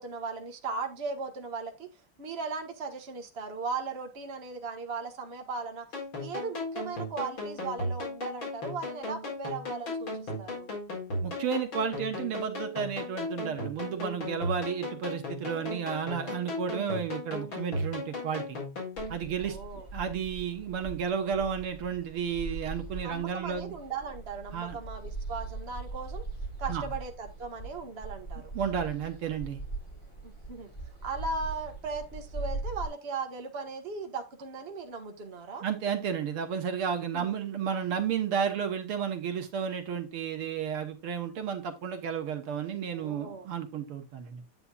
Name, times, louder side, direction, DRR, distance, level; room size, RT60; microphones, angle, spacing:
voice 1, 0.0-5.9 6.2-10.7 15.5-15.9 19.3-19.9 23.0-26.2 26.6-28.5 30.2-30.7 31.0-35.6 37.1-37.3 42.9-43.5, right 4 dB, 30° right, 3 dB, 1.6 m, -37 dB
sound 1, 5.9-19.2, left 2 dB, 60° left, 5.0 m, -36 dB
voice 2, 11.2-18.6 19.1-23.7 24.5-24.8 26.7-26.8 28.5-29.6 35.6-44.4, right 7 dB, 80° right, 5 dB, 2.3 m, -32 dB
sound 2, 19.0-32.9, right 3 dB, 15° left, 2.8 m, -41 dB
9.7 x 8.4 x 2.4 m, 0.25 s
omnidirectional pair, 2.4 m